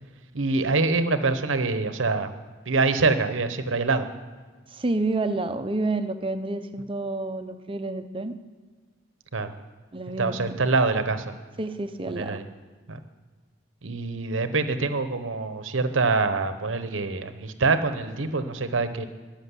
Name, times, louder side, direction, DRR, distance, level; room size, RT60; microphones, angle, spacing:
voice 1, 0.3-2.3 2.6-4.1 9.3-9.5 10.2-11.3 12.2-12.4 12.9-13.0 13.8-19.1, right 3 dB, 80° right, 10 dB, 1.0 m, -25 dB
voice 2, 4.7-8.3 9.9-10.4 11.6-12.4, right 2 dB, 25° right, 8 dB, 0.7 m, -29 dB
13.5 x 6.6 x 9.8 m, 1.4 s
head